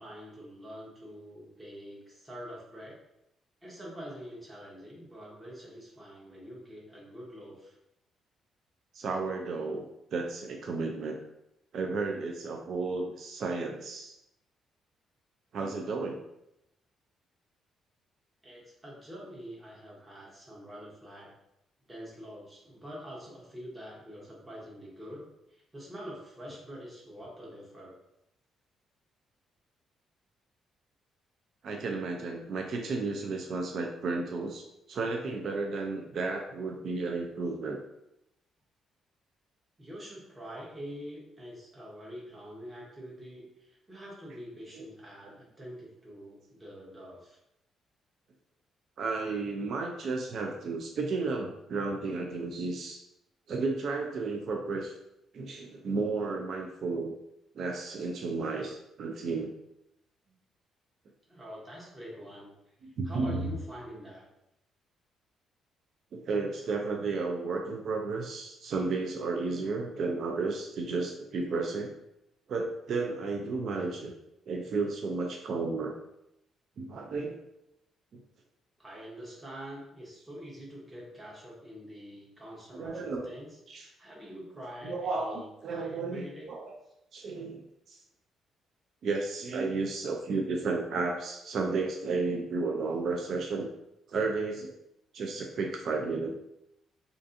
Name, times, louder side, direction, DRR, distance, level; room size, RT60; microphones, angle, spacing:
voice 1, 0.0-3.0 3.6-7.8 18.4-21.3 21.9-27.9 39.8-47.4 60.3-60.4 61.3-62.7 63.0-64.2 78.8-86.4, equal, 20° right, -5 dB, 0.8 m, -45 dB
voice 2, 8.9-9.8 10.1-11.2 11.7-14.1 15.5-16.2 31.6-37.8 44.7-44.8 49.0-53.0 53.5-54.9 55.3-57.1 57.6-59.5 62.8-63.5 66.1-71.9 72.5-74.1 74.5-76.0 76.8-77.4 82.7-83.3 83.7-83.9 84.8-86.7 87.1-88.0 89.0-93.7 94.1-94.7 95.1-96.4, right 3 dB, 65° right, 2 dB, 0.3 m, -33 dB
2.5 x 2.4 x 2.5 m, 0.84 s
cardioid pair, 90°, 0 cm